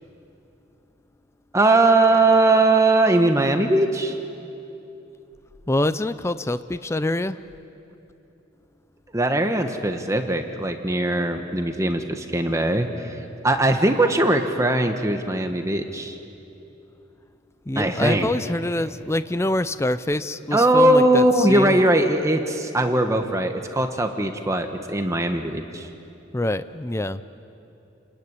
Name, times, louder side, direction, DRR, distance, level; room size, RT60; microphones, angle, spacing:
voice 1, 1.5-4.1 9.1-16.2 17.8-18.3 20.5-25.9, right 2 dB, 15° right, 5 dB, 1.2 m, -20 dB
voice 2, 5.7-7.4 17.7-21.8 26.3-27.2, left 1 dB, 15° left, 13 dB, 0.5 m, -25 dB
29.0 x 19.5 x 9.7 m, 2.9 s
head